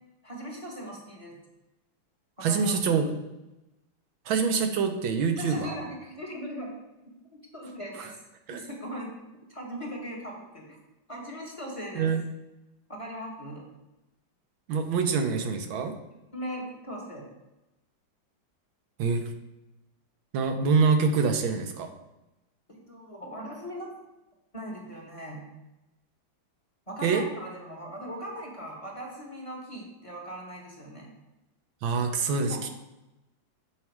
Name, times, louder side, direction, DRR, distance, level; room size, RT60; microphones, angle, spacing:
voice 1, 0.2-1.4 2.4-3.1 5.4-6.7 7.5-8.2 8.5-9.1 9.5-10.8 11.1-12.1 12.9-13.6 16.3-17.3 22.7-23.9 24.5-25.4 26.9-31.1 32.5-32.6, equal, 20° left, -2 dB, 1.1 m, -39 dB
voice 2, 2.4-3.1 4.3-5.8 8.0-8.1 8.5-8.6 12.0-12.2 14.7-16.0 19.0-19.2 20.3-21.9 27.0-27.2 31.8-32.7, right 5 dB, 85° right, 6 dB, 1.6 m, -25 dB
7.4 x 4.8 x 4.7 m, 0.97 s
omnidirectional pair, 2.2 m